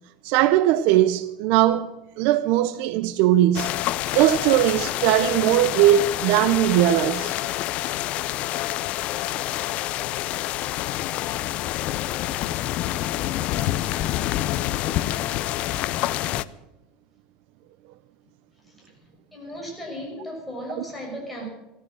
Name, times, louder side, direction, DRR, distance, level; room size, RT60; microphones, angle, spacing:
voice 1, 0.2-3.8 4.1-7.3, right 12 dB, 55° right, 0.6 m, -20 dB
sound 1, 3.5-16.4, left 14 dB, 40° left, 0.5 m, -27 dB
voice 2, 19.3-21.5, equal, ahead, 6.0 m, -36 dB
15.0 x 14.0 x 6.2 m
supercardioid pair, 165°, 3 cm